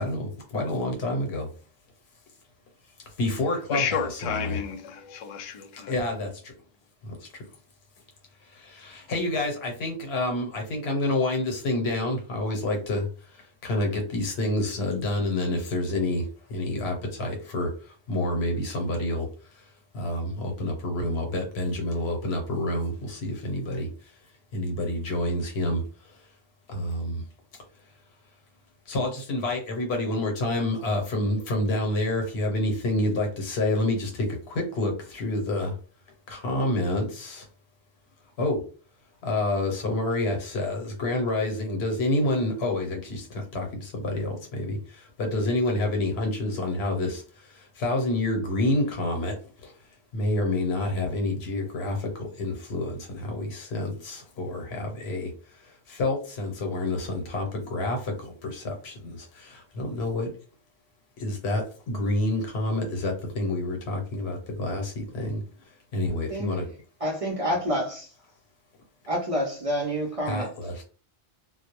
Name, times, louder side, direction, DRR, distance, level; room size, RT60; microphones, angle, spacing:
voice 1, 0.0-1.5 3.2-4.6 5.9-6.5 7.2-7.3 8.5-17.7 18.1-19.3 19.9-23.9 24.5-25.8 26.7-27.2 28.9-35.7 36.3-37.5 38.4-38.6 39.2-49.4 49.6-49.7 50.1-55.3 55.6-60.3 61.2-65.4 65.9-66.7 70.3-70.8, left 1 dB, 85° left, 1.0 m, -28 dB
voice 2, 3.7-5.9, left 7 dB, 55° left, 0.4 m, -31 dB
voice 3, 67.0-68.1 69.1-70.5, equal, 50° right, 0.4 m, -28 dB
2.2 x 2.0 x 2.8 m
omnidirectional pair, 1.0 m